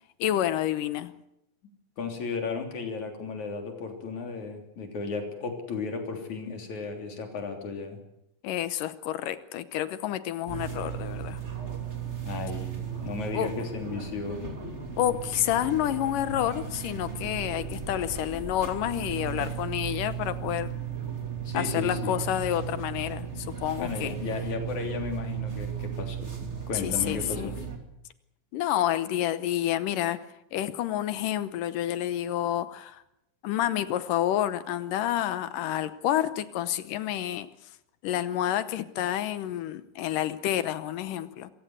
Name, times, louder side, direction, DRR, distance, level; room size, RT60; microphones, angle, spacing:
voice 1, 0.2-1.1 8.4-11.4 13.3-13.5 15.0-20.7 21.5-24.2 26.8-27.5 28.5-30.2 30.5-33.0 33.4-37.5 38.0-41.5, left 12 dB, 75° left, 14 dB, 2.5 m, -29 dB
voice 2, 2.0-8.0 12.2-14.5 21.4-22.1 23.8-27.5, left 4 dB, 55° left, 4 dB, 4.6 m, -34 dB
sound 1, 10.5-27.8, right 8 dB, 20° right, 2.6 m, -36 dB
26.5 x 15.5 x 8.1 m, 0.81 s
omnidirectional pair, 4.0 m